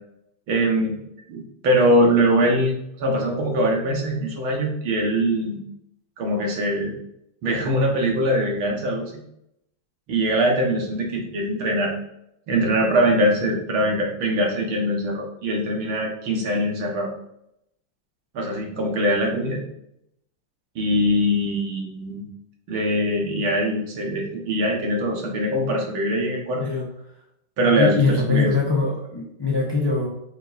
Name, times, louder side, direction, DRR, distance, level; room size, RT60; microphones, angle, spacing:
voice 1, 0.5-1.0 1.3-5.6 6.2-6.9 7.4-9.2 10.1-11.9 12.5-17.1 18.3-19.6 20.8-22.3 22.7-26.6 27.6-28.5, equal, 80° right, 0 dB, 2.3 m, -22 dB
voice 2, 26.5-26.9 27.7-30.1, left 4 dB, 25° left, -2 dB, 0.6 m, -22 dB
8.2 x 5.6 x 2.7 m, 0.78 s
omnidirectional pair, 2.3 m